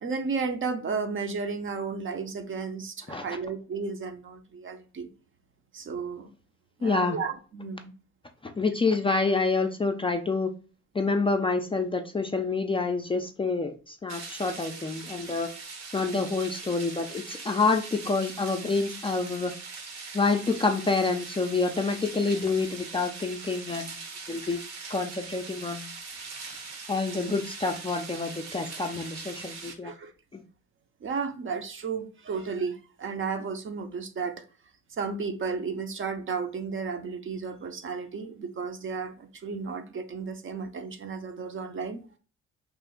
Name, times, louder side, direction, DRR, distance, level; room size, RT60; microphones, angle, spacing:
voice 1, 0.0-5.1 5.7-6.3 6.8-7.9 26.5-26.6 27.2-27.3 29.8-30.1 31.0-34.4 35.0-42.0, right 5 dB, 40° right, 0.6 m, -33 dB
voice 2, 6.8-7.2 8.4-10.5 10.9-15.5 15.9-19.5 20.1-24.0 24.3-24.6 24.9-25.9 26.9-29.9 30.3-30.4, left 3 dB, 20° left, 0.4 m, -27 dB
sound 1, 14.1-29.7, right 4 dB, 65° right, 0.9 m, -41 dB
3.1 x 2.4 x 3.6 m
cardioid pair, 90°, 30 cm